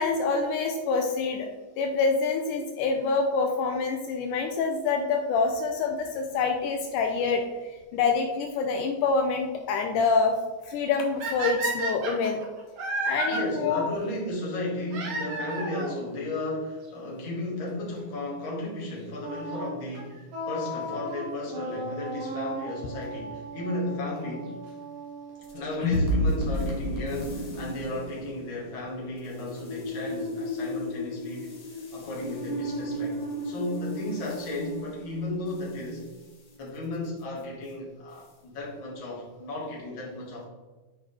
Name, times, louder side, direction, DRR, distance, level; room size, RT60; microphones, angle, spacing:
voice 1, 0.0-1.5 1.8-10.4 10.6-12.4 13.0-13.8, left 4 dB, 80° left, 4 dB, 2.1 m, -26 dB
sound 1, 11.2-13.4 14.9-15.9 16.9-17.0 17.7-17.8 18.0-18.1 19.9-20.2 23.0-23.1 24.2-24.3 25.7-25.8 26.1-26.2 26.4-26.5 26.7-26.8 27.0-27.1 27.2-27.3 27.5-27.6, right 2 dB, 55° right, 2.1 m, -31 dB
voice 2, 13.3-24.5 25.5-36.1 36.6-40.5, left 1 dB, 45° left, -5 dB, 2.3 m, -34 dB
Wind instrument woodwind instrument, 19.2-26.1, right 1 dB, 90° right, 3.4 m, -37 dB
sound 2, 25.4-35.9, left 1 dB, 65° left, 0.9 m, -32 dB
8.3 x 4.9 x 3.3 m, 1.2 s
omnidirectional pair, 3.7 m